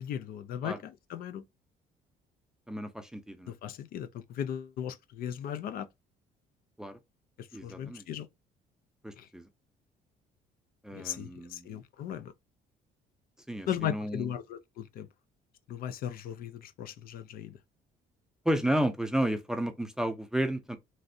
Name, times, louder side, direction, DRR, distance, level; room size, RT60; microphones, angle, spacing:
voice 1, 0.0-1.4 3.5-5.9 7.4-8.3 9.2-9.3 10.9-12.3 13.7-15.1 15.7-17.6, left 10 dB, 60° left, 0.4 m, -37 dB
voice 2, 2.7-3.5 6.8-7.0 7.5-8.1 9.0-9.5 10.8-11.7 13.5-14.3 18.4-20.8, right 1 dB, 5° right, 0.4 m, -32 dB
3.1 x 2.6 x 2.6 m
cardioid pair, 110°, 17 cm